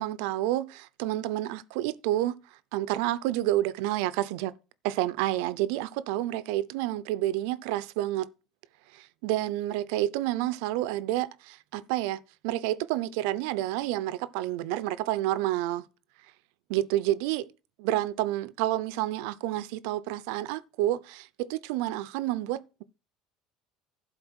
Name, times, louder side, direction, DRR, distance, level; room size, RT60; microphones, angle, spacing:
voice 1, 0.0-4.5 4.8-8.3 8.9-15.9 16.7-17.5 17.8-22.8, right 14 dB, 80° right, 0.6 m, -29 dB
11.5 x 4.0 x 6.2 m
cardioid pair, 130°, 0 cm